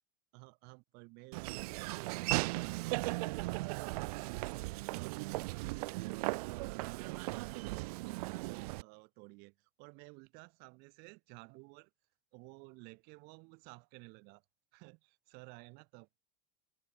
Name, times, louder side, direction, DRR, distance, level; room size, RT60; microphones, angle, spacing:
voice 1, 0.3-6.3 6.7-11.9 12.3-14.4 14.7-15.0 15.3-16.2, right 29 dB, 50° right, 4.8 m, -55 dB
Laughter / Walk footsteps, 1.3-8.8, right 23 dB, 70° right, 2.1 m, -37 dB
open air
supercardioid pair, 150°, 20 cm